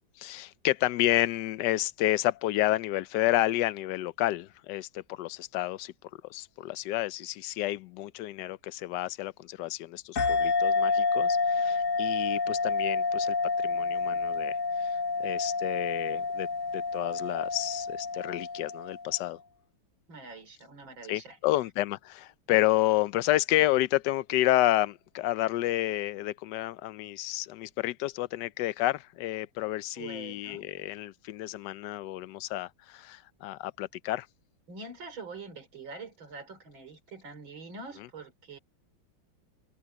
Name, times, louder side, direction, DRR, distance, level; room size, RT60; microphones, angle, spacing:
voice 1, 0.2-5.9 6.3-13.3 13.6-14.9 15.2-16.5 16.7-19.4 21.1-34.3, left 15 dB, 70° left, 1.1 m, -30 dB
sound 1, 10.2-19.2, left 4 dB, 45° left, 1.6 m, -29 dB
voice 2, 20.1-21.4 30.0-30.7 34.7-38.6, right 4 dB, 80° right, 4.2 m, -44 dB
omnidirectional pair, 2.1 m